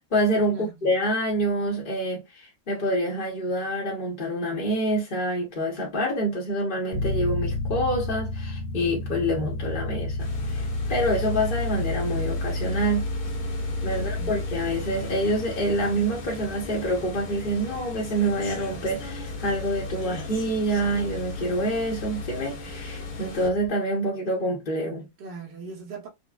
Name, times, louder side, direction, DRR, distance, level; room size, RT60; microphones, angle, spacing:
voice 1, 0.1-13.0 13.8-25.0, right 1 dB, 35° left, 1.0 m, -27 dB
sound 1, 6.9-23.7, left 2 dB, 80° left, 1.5 m, -32 dB
sound 2, 10.2-23.5, left 5 dB, 60° left, 1.6 m, -39 dB
voice 2, 13.9-14.4 25.0-26.1, right 4 dB, 70° right, 1.9 m, -40 dB
5.7 x 2.2 x 2.4 m
omnidirectional pair, 2.0 m